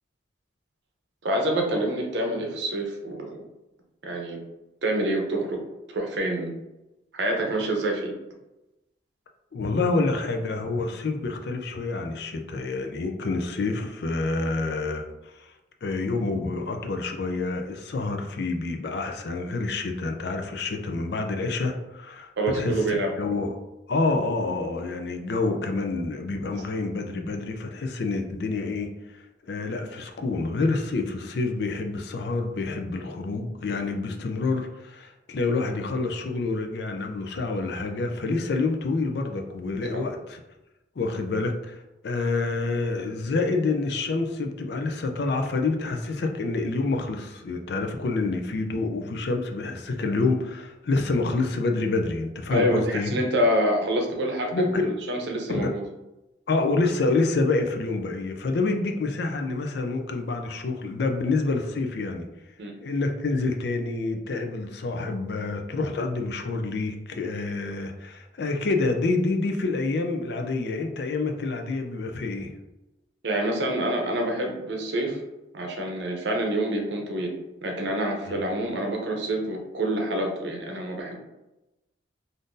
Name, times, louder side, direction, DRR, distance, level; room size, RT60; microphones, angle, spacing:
voice 1, 1.2-3.4 4.0-4.4 4.8-5.6 5.9-6.5 7.1-8.1 22.4-23.1 39.9-40.0 52.5-54.5 54.8-55.8 62.6-62.7 73.2-75.2 75.5-81.2, right 1 dB, 70° right, 1 dB, 0.7 m, -27 dB
voice 2, 9.5-15.5 15.8-23.5 23.9-40.4 41.0-53.2 54.5-54.9 55.5-55.7 56.5-62.3 62.8-72.5 78.3-78.4, left 3 dB, 60° left, 4 dB, 0.4 m, -27 dB
3.6 x 2.6 x 2.6 m, 0.98 s
head